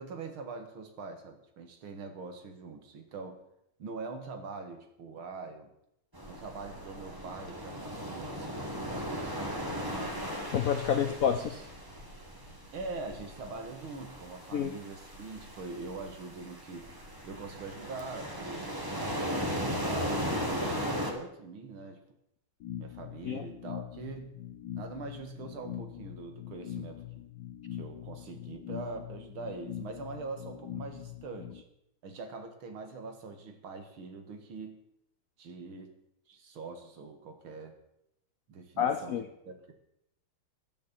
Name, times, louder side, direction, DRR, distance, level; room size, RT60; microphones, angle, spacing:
voice 1, 0.0-3.4 3.8-5.7 6.2-10.2 12.7-16.9 17.2-18.8 19.3-22.1 22.8-24.4 24.7-27.0 27.7-31.6 32.0-34.8 35.4-36.0 36.3-37.8 38.5-39.2 39.5-39.7, right 4 dB, 75° right, 6 dB, 2.4 m, -43 dB
sound 1, 6.1-21.1, equal, 10° right, 1.5 m, -37 dB
voice 2, 10.5-11.6 14.5-14.7 23.2-23.4 38.8-39.3, left 8 dB, 80° left, 9 dB, 0.7 m, -28 dB
sound 2, 22.6-31.6, left 11 dB, 65° left, 1.3 m, -43 dB
15.5 x 11.0 x 4.2 m, 0.78 s
omnidirectional pair, 2.3 m